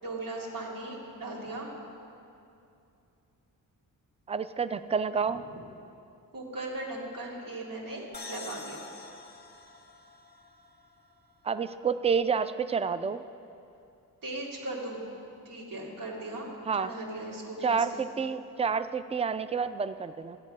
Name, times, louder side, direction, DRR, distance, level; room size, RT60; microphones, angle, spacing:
voice 1, 0.0-1.8 6.3-8.8 14.2-15.0 15.4-18.0, right 2 dB, 70° right, -4 dB, 2.6 m, -38 dB
voice 2, 4.3-5.4 11.4-13.2 16.7-16.9 17.6-20.4, right 6 dB, 20° right, 13 dB, 0.3 m, -29 dB
sound 1, 8.1-11.7, left 3 dB, 30° left, 0.7 m, -46 dB
12.5 x 8.4 x 5.4 m, 2.6 s
cardioid pair, 90°, 35 cm